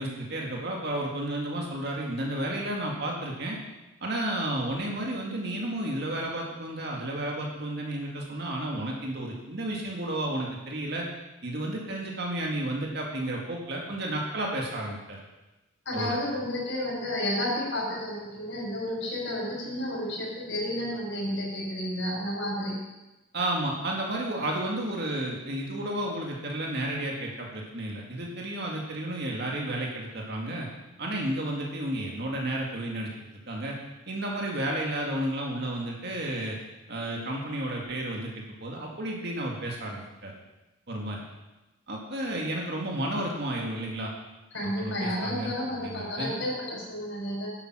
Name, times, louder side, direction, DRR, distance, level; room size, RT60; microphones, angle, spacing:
voice 1, 0.0-3.6 4.0-11.1 11.4-15.2 15.9-16.2 23.3-30.7 31.0-33.1 33.5-33.8 34.1-36.6 36.9-40.3 40.9-41.2 41.9-44.1 44.6-46.3, right 1 dB, 60° right, -1 dB, 2.1 m, -32 dB
voice 2, 15.9-22.8 44.5-47.5, left 1 dB, 85° left, -4 dB, 5.3 m, -31 dB
11.0 x 8.9 x 6.2 m, 1.0 s
head